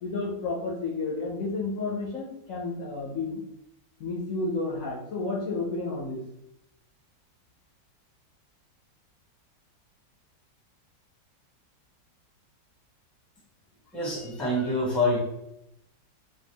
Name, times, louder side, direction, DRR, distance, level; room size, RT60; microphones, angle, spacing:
voice 1, 0.0-3.4 4.0-6.2, left 3 dB, 60° left, -4 dB, 0.9 m, -31 dB
voice 2, 13.9-15.2, left 1 dB, ahead, -4 dB, 0.8 m, -26 dB
4.6 x 2.4 x 3.4 m, 0.82 s
omnidirectional pair, 2.0 m